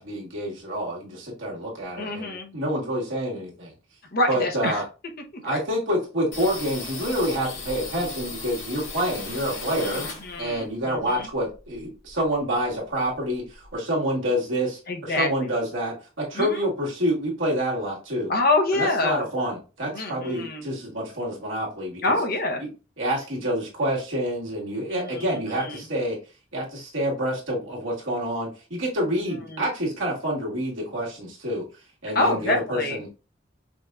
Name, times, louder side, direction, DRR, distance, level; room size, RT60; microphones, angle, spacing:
voice 1, 0.0-3.7 4.3-4.8 5.4-10.1 10.4-18.3 18.7-22.2 22.6-22.7 23.0-26.2 26.5-31.6 32.0-33.1, equal, 80° right, -3 dB, 1.6 m, -27 dB
voice 2, 2.0-2.6 4.1-4.8 5.4-5.6 9.8-11.3 14.9-15.5 16.3-16.7 18.3-19.3 19.9-20.6 22.0-22.6 24.9-25.8 29.5-29.6 32.1-33.0, left 2 dB, 50° left, 4 dB, 0.8 m, -26 dB
sound 1, 6.3-10.7 11.0-12.4 12.7-12.8 13.0-13.7, left 3 dB, 85° left, 1.6 m, -37 dB
5.2 x 2.5 x 2.3 m, 0.32 s
head